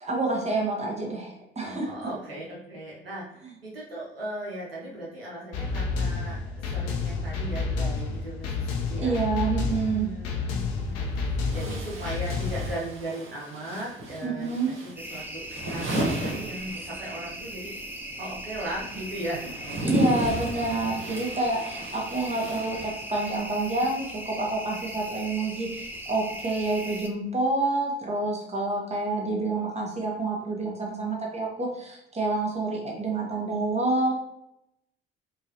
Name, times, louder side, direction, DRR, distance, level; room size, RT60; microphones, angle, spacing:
voice 1, 0.0-1.9 9.0-10.1 14.2-14.7 19.8-34.1, right 2 dB, 20° right, -1 dB, 1.4 m, -28 dB
voice 2, 1.6-6.4 6.7-9.2 9.8-17.7 18.2-19.5, right 1 dB, 90° right, -5 dB, 0.8 m, -37 dB
sound 1, 5.5-12.7, left 4 dB, 60° left, 0.7 m, -30 dB
sound 2, 11.4-17.2 17.5-23.3, right 1 dB, 45° right, 1.2 m, -33 dB
sound 3, 15.0-27.1, right 1 dB, 5° right, 0.6 m, -39 dB
4.6 x 2.7 x 2.9 m, 0.80 s
figure-of-eight pair, 50°, 29 cm